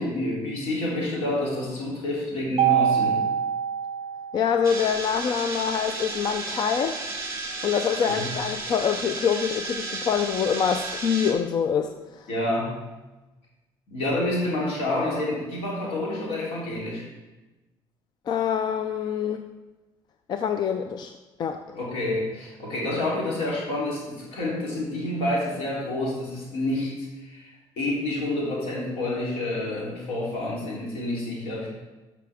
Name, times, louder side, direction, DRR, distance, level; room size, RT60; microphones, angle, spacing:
voice 1, 0.0-3.2 8.0-8.3 12.3-12.7 13.9-17.1 21.7-27.5 27.8-31.7, left 1 dB, 85° left, -5 dB, 3.4 m, -28 dB
Mallet percussion, 2.6-4.8, right 9 dB, 55° right, 0.4 m, -24 dB
voice 2, 4.3-7.0 7.6-12.3 18.3-19.4 20.3-21.1 21.4-21.6, left 7 dB, 50° left, 7 dB, 0.5 m, -25 dB
sound 1, 4.6-11.3, right 3 dB, 30° right, 2.2 m, -33 dB
12.5 x 5.8 x 3.5 m, 1.1 s
cardioid pair, 125°, 10 cm